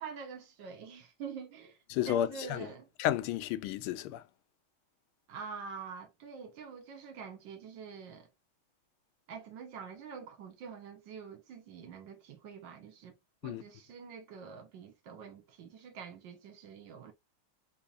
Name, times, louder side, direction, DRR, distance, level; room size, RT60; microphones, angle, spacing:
voice 1, 0.0-1.8 2.1-2.9 5.3-8.3 9.3-13.2 13.4-17.1, right 6 dB, 65° right, 1.5 m, -46 dB
voice 2, 1.9-2.7 3.0-4.2 13.4-13.6, left 12 dB, 85° left, 1.4 m, -32 dB
4.0 x 2.8 x 2.3 m
omnidirectional pair, 2.3 m